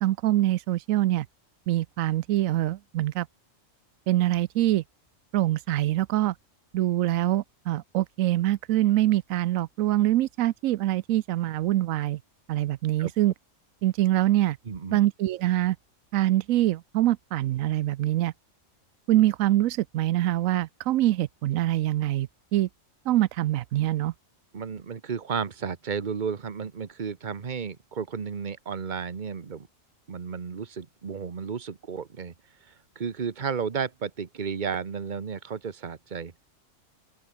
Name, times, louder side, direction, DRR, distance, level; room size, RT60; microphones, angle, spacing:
voice 1, 0.0-1.3 1.7-3.3 4.1-4.8 5.3-6.3 6.7-12.2 12.5-13.3 13.8-14.6 14.9-15.8 16.1-18.3 19.1-22.7 23.1-24.1, right 14 dB, 85° right, 1.0 m, -24 dB
voice 2, 14.7-15.0 24.5-29.7 30.1-32.3 32.7-36.4, right 6 dB, 40° right, 1.2 m, -33 dB
open air
omnidirectional pair, 1.4 m